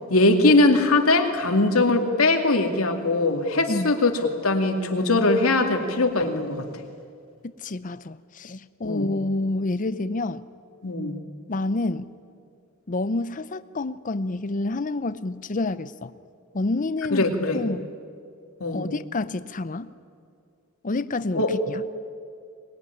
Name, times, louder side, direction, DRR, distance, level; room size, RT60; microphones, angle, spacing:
voice 1, 0.1-4.1 4.4-6.7 8.8-9.1 10.8-11.2 17.1-17.6 18.6-18.9 21.3-21.5, left 2 dB, 85° left, 4 dB, 2.4 m, -21 dB
voice 2, 7.6-10.4 11.5-12.1 12.9-16.1 16.5-17.3 17.5-17.9 18.7-19.9 20.8-21.8, left 2 dB, 40° left, 14 dB, 0.6 m, -28 dB
23.5 x 21.0 x 9.8 m, 2.3 s
head